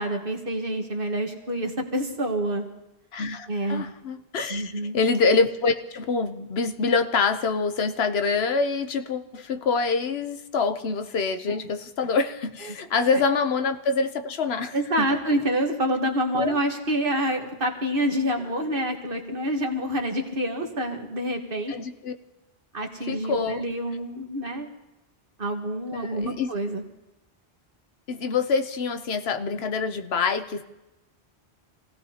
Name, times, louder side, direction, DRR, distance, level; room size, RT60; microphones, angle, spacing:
voice 1, 0.0-2.7 3.5-3.8 4.5-5.0 11.5-11.6 14.7-21.7 22.7-24.7 25.4-26.8, right 1 dB, 60° right, 3 dB, 1.7 m, -27 dB
voice 2, 3.1-15.1 16.3-16.6 21.7-22.1 23.1-23.6 25.9-26.5 28.1-30.6, left 4 dB, 75° left, 9 dB, 1.1 m, -26 dB
26.5 x 16.5 x 2.9 m, 0.95 s
omnidirectional pair, 1.1 m